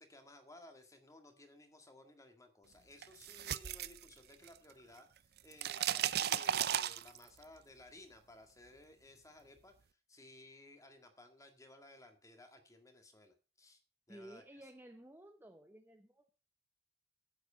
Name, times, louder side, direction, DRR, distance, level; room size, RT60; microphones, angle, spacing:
voice 1, 0.0-9.7 10.1-13.8 14.1-14.6, left 2 dB, 20° left, 6 dB, 1.8 m, -58 dB
sound 1, 3.0-4.7 5.0-7.4, right 10 dB, 55° right, 0.5 m, -35 dB
voice 2, 14.1-16.3, right 1 dB, 10° right, 5 dB, 0.9 m, -55 dB
10.0 x 8.0 x 5.6 m, 0.35 s
head